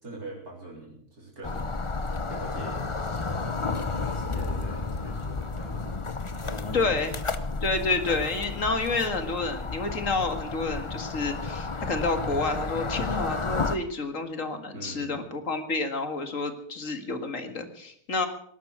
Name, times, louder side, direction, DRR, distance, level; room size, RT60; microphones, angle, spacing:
voice 1, 0.0-1.8 2.3-6.0 6.3-7.1 14.7-15.2, right 2 dB, 70° right, -2 dB, 4.3 m, -43 dB
sound 1, 1.4-13.8, left 3 dB, 25° left, 0.7 m, -32 dB
voice 2, 6.7-7.2 7.6-18.3, left 3 dB, 55° left, 7 dB, 2.2 m, -29 dB
18.5 x 12.0 x 6.1 m, 0.68 s
omnidirectional pair, 1.7 m